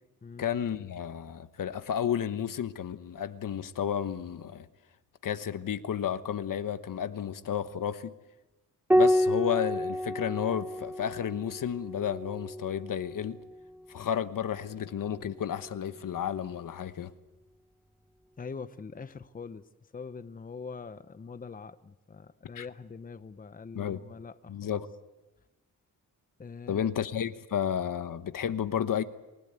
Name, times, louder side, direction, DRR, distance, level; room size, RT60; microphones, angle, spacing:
voice 1, 0.4-4.7 5.2-8.1 8.9-13.4 13.9-17.1 22.6-22.7 23.7-24.0 24.5-24.9 26.7-29.0, left 9 dB, 70° left, 11 dB, 1.1 m, -32 dB
Piano, 8.9-13.7 15.4-16.2, equal, 5° right, 0.9 m, -29 dB
voice 2, 18.4-19.7 19.9-24.8 26.4-26.9, left 5 dB, 25° left, 12 dB, 0.8 m, -43 dB
29.0 x 16.0 x 8.2 m, 1.1 s
wide cardioid pair, 130°, 34 cm